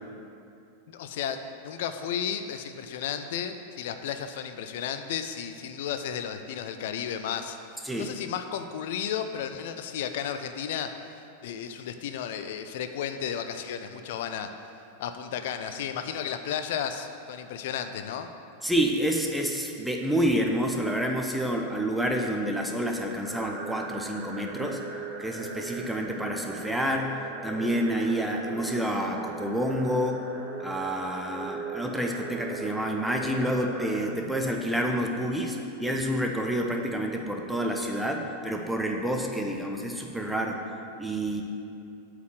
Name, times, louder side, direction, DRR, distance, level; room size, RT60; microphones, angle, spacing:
voice 1, 0.9-7.6 8.0-10.9 11.4-14.5 15.0-18.3, left 8 dB, 55° left, 8 dB, 0.6 m, -33 dB
voice 2, 7.8-8.1 18.6-24.8 25.2-30.3 30.6-41.4, equal, ahead, 1 dB, 0.9 m, -28 dB
sound 1, 23.2-34.1, right 4 dB, 30° right, 1.1 m, -40 dB
8.2 x 4.9 x 7.5 m, 2.7 s
figure-of-eight pair, 90°, 0 cm